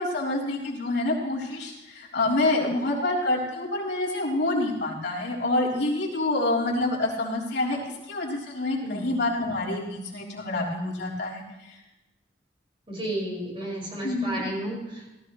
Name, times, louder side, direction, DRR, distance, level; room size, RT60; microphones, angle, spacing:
voice 1, 0.0-7.8 8.1-11.8 14.0-14.4, left 2 dB, 70° left, -5 dB, 3.5 m, -27 dB
voice 2, 12.9-15.1, right 1 dB, 30° right, -3 dB, 5.3 m, -32 dB
17.5 x 14.0 x 3.1 m, 1.0 s
head